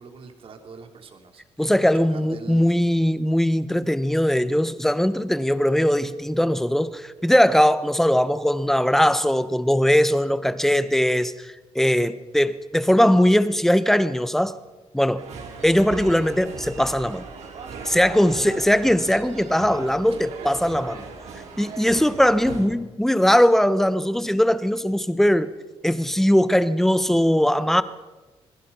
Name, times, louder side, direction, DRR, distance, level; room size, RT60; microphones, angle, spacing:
voice 1, 0.0-2.8 20.1-20.7, right 5 dB, 50° right, 2.9 m, -44 dB
voice 2, 1.6-14.5 14.9-15.2 15.6-17.2 17.8-21.0 21.6-25.5 25.8-27.8, equal, 5° left, 1.0 m, -20 dB
sound 1, 15.2-22.7, right 4 dB, 75° right, 4.8 m, -38 dB
26.5 x 20.5 x 5.5 m
cardioid pair, 125°, 12 cm